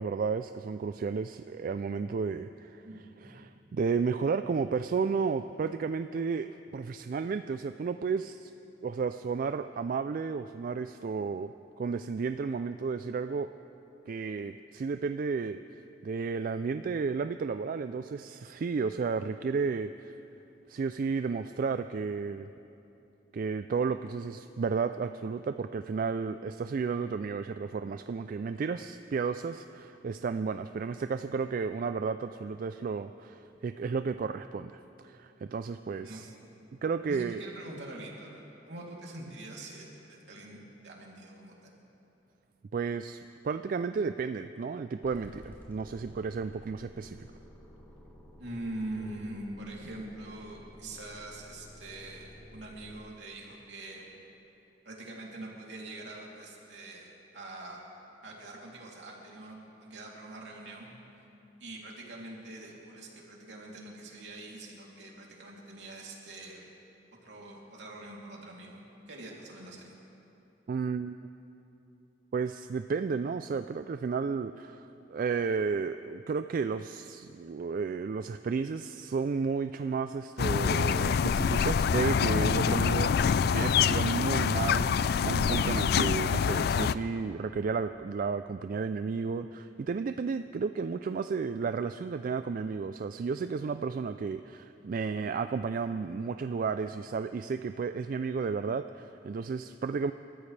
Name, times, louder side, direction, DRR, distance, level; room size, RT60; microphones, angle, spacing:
voice 1, 0.0-2.9 3.2-8.5 8.8-13.5 14.1-15.6 16.0-20.2 20.7-22.5 23.3-36.3 36.8-37.4 42.7-47.2 70.7-71.3 72.3-100.1, right 5 dB, 50° right, 10 dB, 0.3 m, -32 dB
voice 2, 2.8-3.3 36.0-36.3 37.1-41.7 48.4-54.2 54.8-57.8 58.2-60.9 61.6-66.6 67.2-68.8 69.1-69.9, right 2 dB, 70° right, -3 dB, 3.0 m, -44 dB
sound 1, 45.0-53.0, left 1 dB, 10° left, 2.7 m, -52 dB
sound 2, 80.4-86.9, left 6 dB, 60° left, 0.3 m, -26 dB
29.0 x 13.5 x 3.3 m, 2.9 s
head